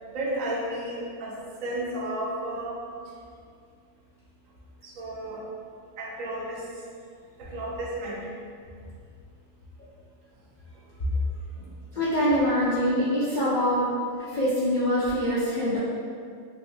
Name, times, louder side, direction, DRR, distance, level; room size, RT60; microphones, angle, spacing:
voice 1, 0.1-2.8 4.8-5.4 6.0-6.7 7.4-8.3 11.1-11.2 11.9-12.0, right 1 dB, 75° right, -3 dB, 1.0 m, -33 dB
voice 2, 11.9-13.9 14.2-15.8, equal, 65° left, -10 dB, 0.4 m, -24 dB
3.3 x 2.6 x 2.7 m, 2.3 s
omnidirectional pair, 1.5 m